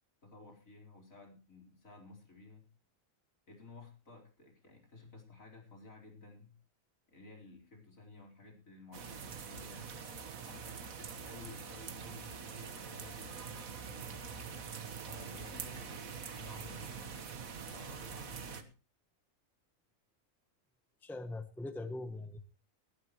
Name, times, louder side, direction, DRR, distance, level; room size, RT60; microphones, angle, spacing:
voice 1, 0.2-2.7 3.5-6.6 7.1-9.9 10.4-14.2 15.0-17.2 17.5-18.7, left 3 dB, 75° left, 0 dB, 4.8 m, -54 dB
sound 1, 8.9-18.6, right 6 dB, 80° right, 1.8 m, -44 dB
voice 2, 21.0-22.4, left 2 dB, ahead, 9 dB, 1.0 m, -41 dB
20.0 x 12.0 x 3.1 m, 0.32 s
omnidirectional pair, 1.4 m